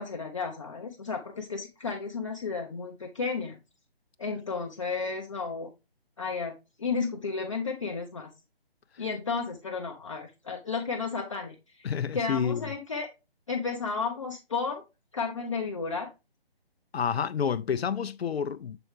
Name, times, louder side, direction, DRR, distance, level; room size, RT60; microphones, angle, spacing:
voice 1, 0.0-3.6 4.2-5.7 6.2-8.3 9.0-13.1 13.5-14.8 15.1-16.1, left 4 dB, 30° left, 0.6 m, -33 dB
voice 2, 11.8-12.7 16.9-18.8, left 7 dB, 80° left, 0.5 m, -29 dB
6.8 x 4.4 x 3.2 m
figure-of-eight pair, 150°, 31 cm